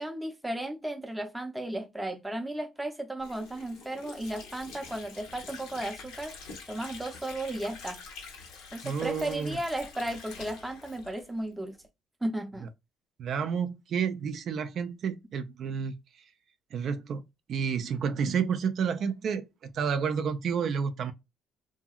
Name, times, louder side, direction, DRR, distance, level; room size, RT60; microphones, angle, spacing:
voice 1, 0.0-6.3 6.7-8.0 8.7-11.8 12.2-12.7, right 1 dB, 10° right, 0.5 m, -35 dB
Water / Sink (filling or washing), 3.2-11.8, left 4 dB, 80° left, 1.1 m, -46 dB
voice 2, 8.8-9.6 13.2-15.9 16.7-17.2 17.5-21.1, right 6 dB, 55° right, 0.4 m, -30 dB
2.7 x 2.7 x 2.3 m
cardioid pair, 95°, 0 cm